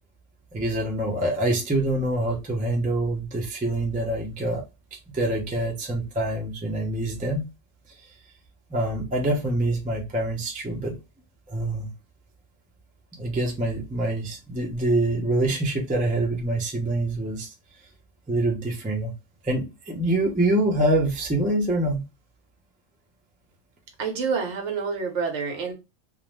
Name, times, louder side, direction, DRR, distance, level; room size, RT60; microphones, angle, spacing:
voice 1, 0.5-4.6 5.1-7.5 8.7-11.0 11.5-11.9 13.1-17.5 18.3-19.1 19.4-22.0, right 1 dB, 10° right, 0.3 m, -25 dB
voice 2, 24.0-25.7, right 5 dB, 70° right, 1.0 m, -28 dB
2.5 x 2.1 x 3.0 m
omnidirectional pair, 1.3 m